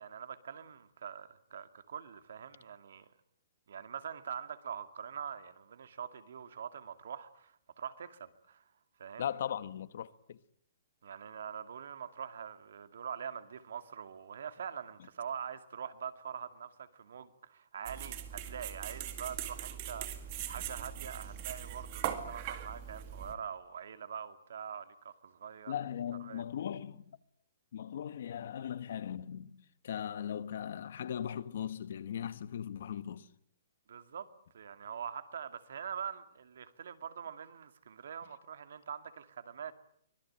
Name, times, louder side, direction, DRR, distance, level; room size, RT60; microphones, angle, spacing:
voice 1, 0.0-3.1 3.7-8.6 9.0-9.3 11.0-25.7 26.2-26.4 33.9-34.3 34.5-39.7, right 7 dB, 65° right, 2.3 m, -44 dB
voice 2, 9.2-10.4 25.7-27.0 27.7-33.3, left 9 dB, 55° left, 1.2 m, -38 dB
sound 1, 17.9-23.3, right 10 dB, 30° right, 2.2 m, -41 dB
25.0 x 21.0 x 8.8 m
hypercardioid pair, 170°, 0 cm